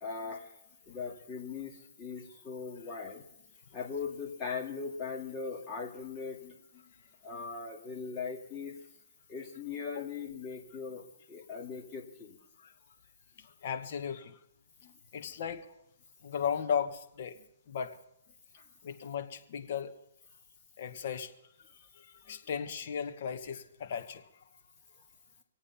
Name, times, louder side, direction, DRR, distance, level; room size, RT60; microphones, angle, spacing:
voice 1, 0.0-0.5 0.9-3.2 3.7-6.8 7.2-8.8 9.3-12.4 14.8-14.9, left 5 dB, 20° left, -1 dB, 2.1 m, -40 dB
voice 2, 13.4-14.4 15.1-15.7 16.2-17.4 17.7-18.0 18.8-19.9 20.8-21.3 22.0-24.4, left 7 dB, 50° left, 7 dB, 1.3 m, -36 dB
25.0 x 8.6 x 5.7 m, 0.80 s
hypercardioid pair, 160°, 0 cm